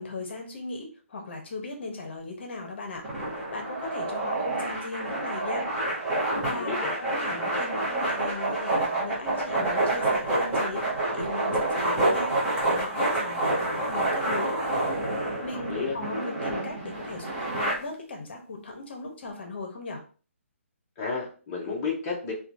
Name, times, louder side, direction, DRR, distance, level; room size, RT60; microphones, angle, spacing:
voice 1, 0.0-3.0 3.5-5.7 6.4-12.3 12.7-14.6 15.4-20.0, left 3 dB, 50° left, 3 dB, 0.8 m, -38 dB
sound 1, 3.0-17.7, right 2 dB, 10° right, 0.8 m, -28 dB
voice 2, 6.5-7.0 15.5-16.0 21.0-22.3, left 5 dB, 20° left, -5 dB, 0.6 m, -32 dB
2.9 x 2.3 x 2.5 m, 0.38 s
hypercardioid pair, 170°, 7 cm